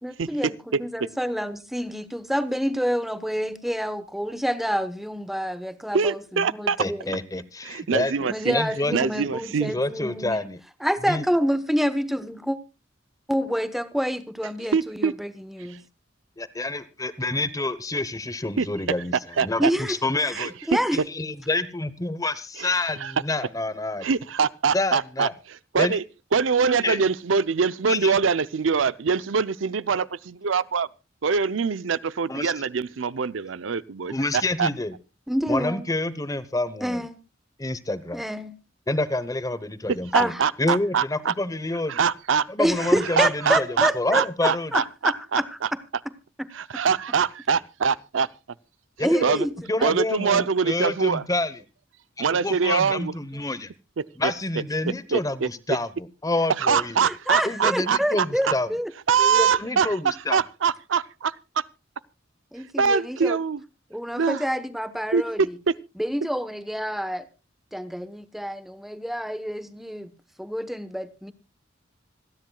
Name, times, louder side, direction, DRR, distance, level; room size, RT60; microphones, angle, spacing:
voice 1, 0.0-7.1 8.2-10.5 10.8-12.6 13.3-15.8 19.6-21.0 35.3-35.8 36.8-37.2 38.1-38.5 40.1-40.4 42.6-45.6 46.4-46.5 49.0-49.5 49.8-49.9 53.3-53.6 57.0-58.9 59.2-59.6 62.5-63.4 63.9-65.6 66.0-67.3 67.7-70.1 70.4-71.3, equal, ahead, 1.0 m, -28 dB
voice 2, 5.9-6.8 7.6-8.6 8.9-9.7 14.7-15.1 18.6-18.7 19.4-19.7 20.4-20.5 22.6-22.7 23.0-23.1 24.0-25.3 25.7-26.0 26.3-30.9 31.2-34.7 40.1-41.3 41.9-42.5 43.2-45.4 46.5-48.3 49.2-49.5 49.8-51.2 52.2-53.1 54.0-54.3 55.1-55.5 56.6-58.2 59.1-59.9 60.3-61.6 62.8-63.6 64.2-64.4 65.1-65.2 65.7-65.8, right 6 dB, 90° right, 0.6 m, -24 dB
voice 3, 6.8-8.1 8.5-8.9 9.7-10.6 11.0-11.2 16.4-20.5 20.9-24.1 24.7-25.3 25.8-26.0 26.7-27.0 27.9-28.2 32.3-32.5 34.1-34.9 35.5-37.1 37.6-38.2 38.9-40.3 40.6-42.0 42.5-44.7 49.0-49.4 49.7-51.6 52.2-53.7 54.2-55.9 56.2-57.0 57.4-58.7 59.3-60.4, left 2 dB, 20° left, 0.9 m, -28 dB
26.5 x 10.5 x 2.3 m
head